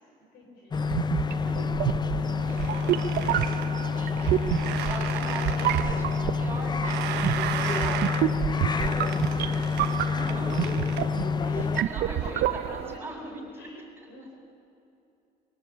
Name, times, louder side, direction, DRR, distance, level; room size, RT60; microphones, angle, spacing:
voice 1, 0.2-0.8 2.2-4.3 11.4-13.2 13.6-14.3, left 2 dB, 85° left, 2 dB, 6.5 m, -50 dB
sound 1, 0.7-11.8, left 5 dB, 25° left, 0.6 m, -28 dB
sound 2, 0.8-13.0, right 12 dB, 65° right, 0.7 m, -29 dB
sound 3, 2.3-11.8, right 11 dB, 85° right, 1.2 m, -37 dB
voice 2, 2.4-2.7 4.0-4.2 4.9-6.9 7.3-9.1 10.0-10.8 11.5-13.7, right 1 dB, 15° right, -2 dB, 7.2 m, -40 dB
25.5 x 17.5 x 8.6 m, 2.7 s
cardioid pair, 110°, 17 cm